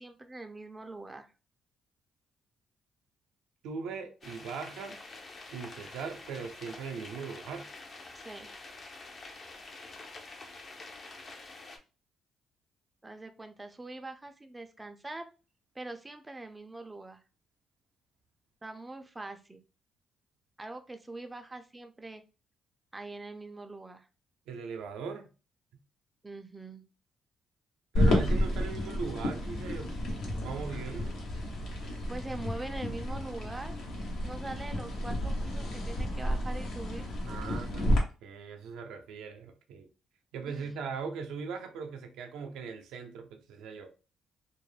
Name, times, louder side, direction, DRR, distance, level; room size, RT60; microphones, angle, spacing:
voice 1, 0.0-1.3 8.2-8.5 13.0-15.3 15.8-17.2 18.6-19.6 20.6-22.2 22.9-24.1 26.2-26.8 31.8-33.8 34.2-37.1 40.5-40.7, right 2 dB, 15° right, 0.4 m, -43 dB
voice 2, 3.6-5.0 5.5-7.7 24.5-25.3 27.9-29.9 30.4-31.2 37.3-39.9 40.3-43.9, right 5 dB, 90° right, 0.4 m, -39 dB
sound 1, 4.2-11.8, left 3 dB, 40° left, 0.5 m, -47 dB
sound 2, 27.9-38.0, left 1 dB, 75° left, 0.8 m, -31 dB
2.3 x 2.0 x 3.2 m
cardioid pair, 90°, 0 cm